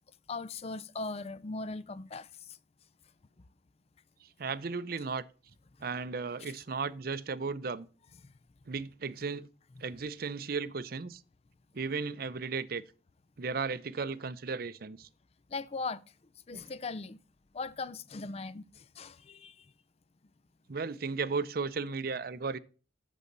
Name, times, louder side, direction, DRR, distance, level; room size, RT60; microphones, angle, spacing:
voice 1, 0.3-2.3 15.5-16.0 16.5-17.2 17.5-19.5, left 3 dB, 35° left, 0.4 m, -39 dB
voice 2, 4.2-5.2 5.8-7.9 8.7-9.5 9.8-11.2 11.7-12.8 13.4-15.1 16.5-16.6 20.7-22.6, right 4 dB, 55° right, 0.5 m, -35 dB
8.4 x 7.1 x 3.9 m
head